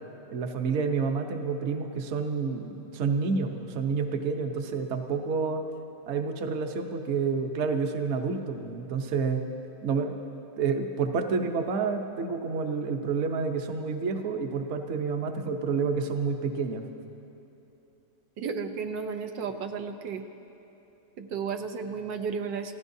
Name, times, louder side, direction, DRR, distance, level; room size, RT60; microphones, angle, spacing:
voice 1, 0.3-5.6 6.1-9.4 9.8-10.1 10.6-16.8, right 5 dB, 50° right, 5 dB, 1.0 m, -29 dB
voice 2, 18.4-20.2 21.2-22.8, right 5 dB, 90° right, 5 dB, 1.6 m, -33 dB
29.5 x 15.5 x 2.7 m, 3.0 s
omnidirectional pair, 1.9 m